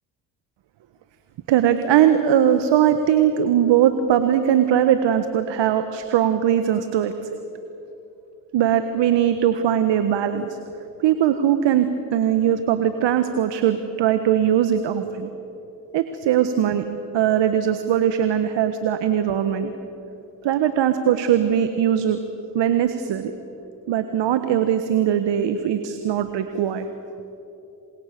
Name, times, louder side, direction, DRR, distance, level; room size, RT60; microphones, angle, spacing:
voice 1, 1.5-7.1 8.5-10.6 11.0-15.3 15.9-16.8 17.1-19.7 20.4-22.2 22.5-23.3 23.9-26.9, right 10 dB, 65° right, 9 dB, 1.6 m, -20 dB
28.5 x 25.0 x 6.9 m, 2.8 s
hypercardioid pair, 60°, 47 cm